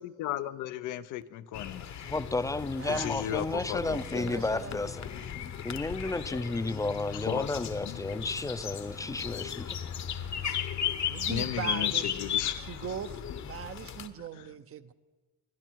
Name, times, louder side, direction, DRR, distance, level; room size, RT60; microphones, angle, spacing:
voice 1, 0.0-1.9 2.9-4.4 7.1-8.1 11.3-12.6 14.3-14.4, left 12 dB, 85° left, 12 dB, 0.6 m, -36 dB
sound 1, 1.5-14.1, left 8 dB, 65° left, 1.1 m, -36 dB
voice 2, 2.1-5.0 5.6-9.8, left 2 dB, 10° left, 13 dB, 0.5 m, -32 dB
voice 3, 2.8-4.9 11.1-12.2 12.6-14.9, right 8 dB, 50° right, 11 dB, 0.8 m, -40 dB
sound 2, 3.3-10.6, left 10 dB, 35° left, 0.8 m, -50 dB
21.5 x 12.0 x 4.6 m, 1.3 s
cardioid pair, 90°, 30 cm